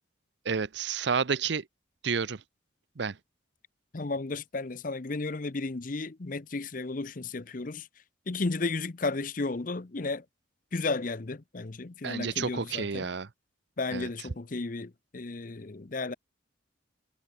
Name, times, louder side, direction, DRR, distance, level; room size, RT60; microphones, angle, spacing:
voice 1, 0.4-1.6 2.0-2.4 3.0-3.2 12.0-13.3 13.9-14.1, right 5 dB, 60° right, 0.6 m, -30 dB
voice 2, 3.9-7.9 8.3-10.2 10.7-13.1 13.8-16.1, left 3 dB, 45° left, 0.7 m, -33 dB
head